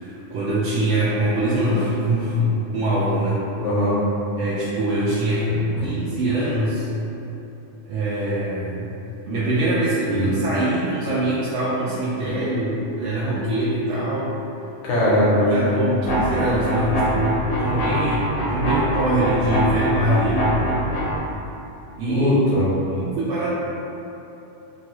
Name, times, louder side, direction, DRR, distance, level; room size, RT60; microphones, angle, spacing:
voice 1, 0.0-3.4 4.4-5.5 5.8-6.9 7.9-8.9 9.3-14.4 15.2-20.5 21.9-22.3 22.9-23.5, right 1 dB, 90° right, -10 dB, 0.9 m, -23 dB
voice 2, 3.6-4.0 5.8-5.9 10.1-10.3 14.8-15.8 22.1-22.7, left 1 dB, 75° left, -6 dB, 1.0 m, -20 dB
sound 1, 16.0-21.2, equal, 55° left, 0.7 m, -24 dB
3.0 x 2.3 x 2.9 m, 2.9 s
omnidirectional pair, 1.3 m